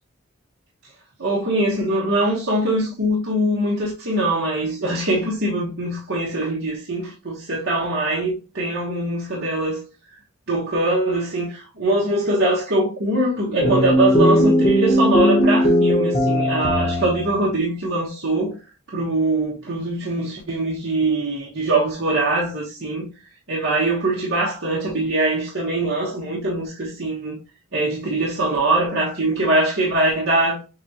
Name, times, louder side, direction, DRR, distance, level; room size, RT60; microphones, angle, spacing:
voice 1, 1.2-9.9 10.5-18.6 18.9-23.1 23.5-27.4 27.7-30.6, right 1 dB, 60° right, 1.2 m, -22 dB
sound 1, 13.6-17.3, equal, 35° left, 1.0 m, -18 dB
7.0 x 2.4 x 2.9 m
head